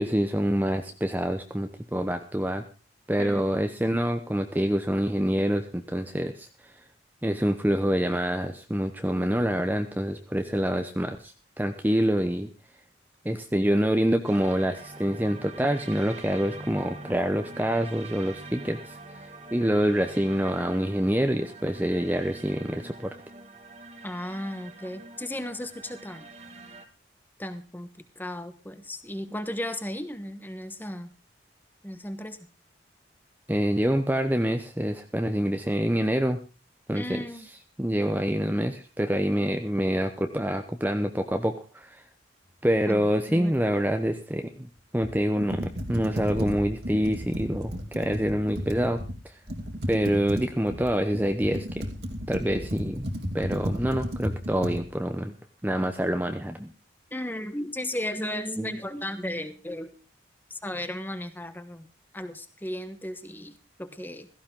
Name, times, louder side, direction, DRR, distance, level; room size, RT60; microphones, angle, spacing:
voice 1, 0.0-2.6 3.1-6.8 7.2-12.5 13.2-19.3 19.5-23.1 33.5-36.4 36.9-37.2 37.8-42.0 42.6-49.0 49.3-49.4 49.9-51.7 52.3-53.1 53.3-55.3 55.6-56.7 58.6-58.8, equal, 10° right, 6 dB, 0.8 m, -26 dB
voice 2, 3.2-3.5 24.0-26.3 27.4-27.9 28.1-31.1 31.8-32.4 36.9-37.5 42.9-43.5 57.1-59.9 60.5-61.9 62.1-64.3, left 1 dB, 10° left, 10 dB, 1.2 m, -35 dB
sound 1, 14.3-26.9, right 3 dB, 35° right, 1.5 m, -44 dB
Computer keyboard, 45.0-49.2 49.5-54.8, equal, 55° right, 2.7 m, -33 dB
16.5 x 15.0 x 3.7 m, 0.32 s
head